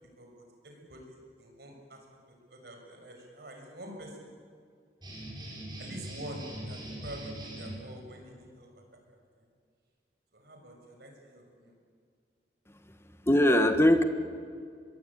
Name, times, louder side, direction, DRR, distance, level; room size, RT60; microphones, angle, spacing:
voice 1, 0.2-2.1 2.5-4.3 5.8-8.8 9.1-9.5 10.3-11.7, right 1 dB, 65° right, 2 dB, 6.5 m, -47 dB
sound 1, 5.0-7.8, right 1 dB, 25° right, 7.5 m, -41 dB
voice 2, 12.7-14.0, left 1 dB, 15° left, 8 dB, 1.6 m, -23 dB
25.0 x 22.0 x 8.8 m, 2.2 s
head